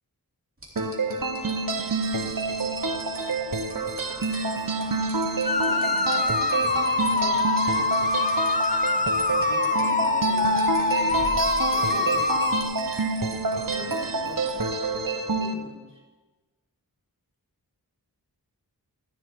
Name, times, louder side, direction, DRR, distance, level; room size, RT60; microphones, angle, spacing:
sound 1, 0.6-15.0, right 2 dB, 35° right, 3.2 m, -42 dB
sound 2, 0.8-15.5, right 3 dB, 55° right, 1.0 m, -28 dB
voice 1, 5.5-8.0 8.8-9.0 9.3-11.3 11.7-12.7 13.4-16.0, left 1 dB, 55° left, -4 dB, 3.9 m, -42 dB
sound 3, 5.5-12.6, left 3 dB, 20° left, 0.6 m, -24 dB
14.5 x 11.5 x 3.7 m, 1.2 s
wide cardioid pair, 45°, 39 cm